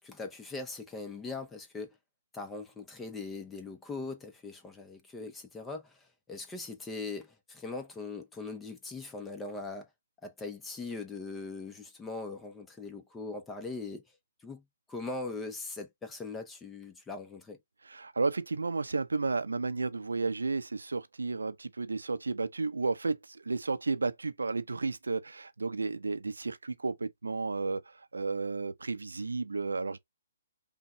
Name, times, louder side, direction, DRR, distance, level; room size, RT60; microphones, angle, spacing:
voice 1, 0.0-1.9 2.3-6.0 6.3-9.9 10.2-14.0 14.4-14.6 14.9-17.6, left 3 dB, 10° left, 0.7 m, -40 dB
voice 2, 17.8-30.0, right 3 dB, 80° right, 0.6 m, -32 dB
5.6 x 2.2 x 3.1 m
figure-of-eight pair, 130°, 0 cm